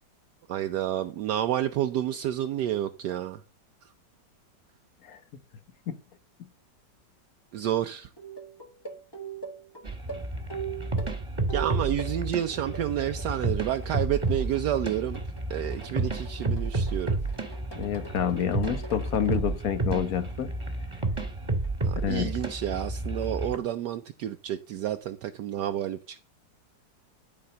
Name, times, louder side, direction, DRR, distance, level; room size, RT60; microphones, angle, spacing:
voice 1, 0.5-3.4 7.5-8.1 11.5-15.2 15.5-17.2 21.8-26.2, right 11 dB, 75° right, 1.1 m, -30 dB
sound 1, 7.6-7.8 8.2-12.2 12.5-13.3 13.6-19.6 20.1-20.5 21.6-21.7, right 6 dB, 15° left, 1.0 m, -42 dB
sound 2, 9.8-23.6, right 2 dB, 15° right, 1.5 m, -31 dB
voice 2, 17.7-20.5 22.0-22.3, left 9 dB, 55° left, 1.4 m, -28 dB
12.0 x 4.3 x 6.6 m
omnidirectional pair, 1.9 m